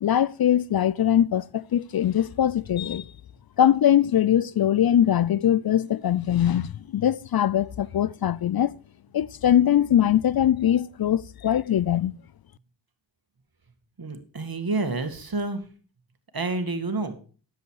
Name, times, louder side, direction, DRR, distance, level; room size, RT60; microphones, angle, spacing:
voice 1, 0.0-3.1 3.6-8.7 9.1-12.1, left 10 dB, 50° left, 0.5 m, -22 dB
voice 2, 14.0-15.6 16.3-17.2, right 3 dB, 50° right, 2.1 m, -29 dB
10.5 x 7.9 x 4.7 m
cardioid pair, 40°, 47 cm